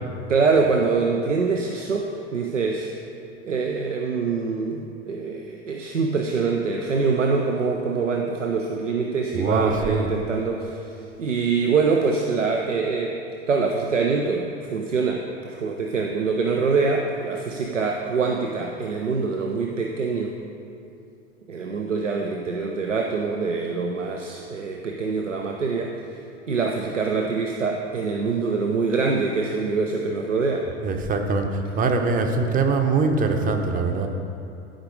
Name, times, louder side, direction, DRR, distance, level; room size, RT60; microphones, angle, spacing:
voice 1, 0.3-2.9 3.4-10.8 11.2-13.2 13.5-20.4 21.5-26.0 26.5-30.7, right 4 dB, 80° right, 2 dB, 0.6 m, -24 dB
voice 2, 9.3-10.1 30.8-31.5 31.7-34.1, right 4 dB, 25° right, 5 dB, 0.8 m, -22 dB
11.5 x 5.1 x 5.1 m, 2.6 s
figure-of-eight pair, 80°, 36 cm